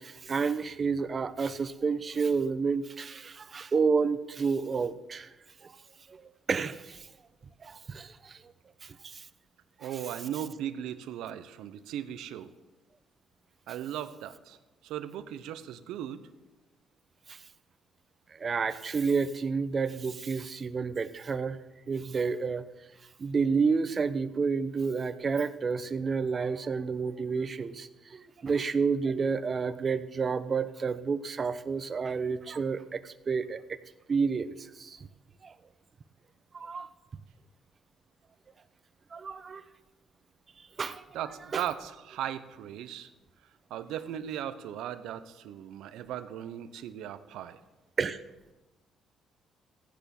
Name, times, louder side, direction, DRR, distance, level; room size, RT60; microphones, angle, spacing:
voice 1, 0.0-5.3 5.6-5.7 6.1-6.2 6.5-7.1 7.6-8.4 8.8-9.3 9.8-9.9 17.3-17.4 18.3-21.6 21.9-22.6 23.2-33.8 34.1-35.0 35.4-35.5 36.5-36.9 39.1-39.6 40.6-41.0 41.5-41.6 48.0-48.2, right 5 dB, 45° right, 13 dB, 1.0 m, -30 dB
voice 2, 9.8-12.5 13.7-14.6 14.8-16.2 41.1-43.1 43.7-47.6, right 10 dB, 80° right, 12 dB, 0.9 m, -37 dB
15.0 x 10.0 x 6.0 m, 1.1 s
supercardioid pair, 60°, 0 cm